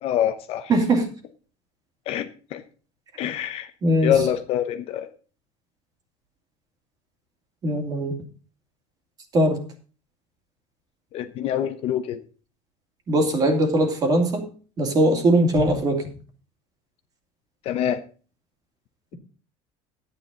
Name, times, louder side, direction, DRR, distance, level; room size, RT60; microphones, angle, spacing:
voice 1, 0.0-0.7 2.1-2.6 3.2-3.7 4.0-5.1 11.1-12.2 17.6-18.0, left 10 dB, 45° left, 9 dB, 0.9 m, -25 dB
voice 2, 0.7-1.1 3.8-4.1 7.6-8.2 9.3-9.6 13.1-14.5 14.8-16.0, right 1 dB, 30° right, 4 dB, 2.4 m, -20 dB
12.5 x 9.5 x 4.0 m, 0.38 s
cardioid pair, 170°, 13 cm